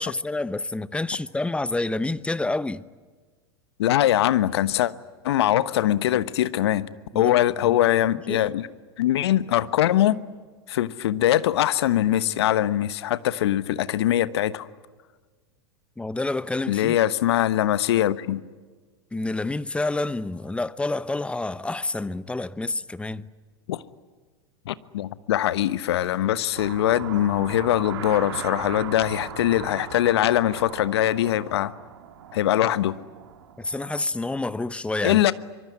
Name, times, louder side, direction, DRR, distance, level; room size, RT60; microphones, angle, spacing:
voice 1, 0.0-2.8 7.1-7.8 8.3-8.5 16.0-17.0 19.1-23.3 33.6-35.2, left 2 dB, 10° left, 0.9 m, -28 dB
voice 2, 3.8-4.9 5.2-6.9 7.1-8.7 9.0-10.2 10.7-14.7 16.7-18.4 23.7-23.8 24.7-31.7 32.3-33.0 35.0-35.3, left 12 dB, 70° left, 1.1 m, -22 dB
sound 1, 26.5-34.0, right 9 dB, 70° right, 2.8 m, -38 dB
25.0 x 23.5 x 9.8 m
hypercardioid pair, 95°, 14 cm